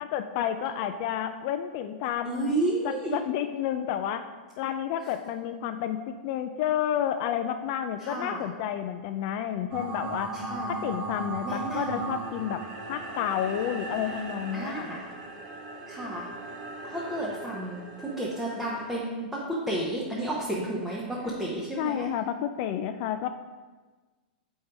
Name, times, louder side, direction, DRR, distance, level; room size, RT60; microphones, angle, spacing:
voice 1, 0.0-2.5 2.8-4.3 4.6-10.3 10.7-12.6 12.9-14.9 21.8-23.3, left 10 dB, 40° left, 8 dB, 0.3 m, -30 dB
voice 2, 2.2-3.1 8.0-8.4 10.3-10.7 11.4-12.0 14.5-15.1 15.9-16.3 16.8-22.1, right 1 dB, 5° right, -6 dB, 0.7 m, -32 dB
sound 1, 9.7-19.0, right 3 dB, 45° right, 0.9 m, -37 dB
7.2 x 5.3 x 3.4 m, 1.3 s
supercardioid pair, 160°, 5 cm